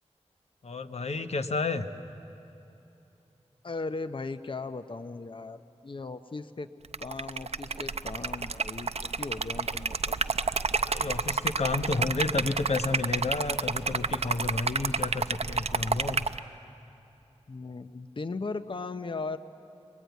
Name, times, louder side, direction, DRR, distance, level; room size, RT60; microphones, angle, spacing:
voice 1, 0.6-1.9 10.8-16.2, left 3 dB, 65° left, 8 dB, 1.0 m, -31 dB
voice 2, 3.6-6.7 7.0-10.1 17.5-19.4, left 3 dB, 45° left, 10 dB, 0.7 m, -37 dB
Liquid, 6.8-16.4, right 4 dB, 60° right, 0.6 m, -30 dB
23.5 x 20.5 x 9.3 m, 3.0 s
wide cardioid pair, 65°, 12 cm